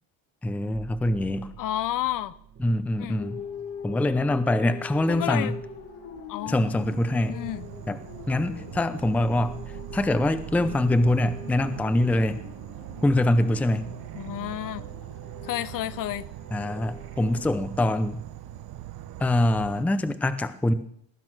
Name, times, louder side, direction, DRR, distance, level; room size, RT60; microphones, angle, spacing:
voice 1, 0.4-1.5 2.6-3.4 3.8-5.6 6.5-7.4 7.9-8.0 8.3-9.6 9.9-12.4 13.0-13.9 16.5-18.2 19.2-20.7, left 1 dB, 5° left, 12 dB, 0.5 m, -24 dB
sound 1, 0.7-20.1, right 8 dB, 30° right, 1.4 m, -50 dB
voice 2, 1.6-2.4 3.0-3.2 5.1-5.5 6.3-6.7 7.3-7.7 14.1-14.8 15.4-16.3, left 13 dB, 45° left, 16 dB, 0.7 m, -30 dB
sound 2, 3.1-17.4, left 7 dB, 80° left, 2.8 m, -43 dB
Insect / Frog, 6.7-19.8, right 14 dB, 55° right, 0.9 m, -41 dB
19.0 x 10.5 x 6.2 m, 0.66 s
cardioid pair, 155°, 46 cm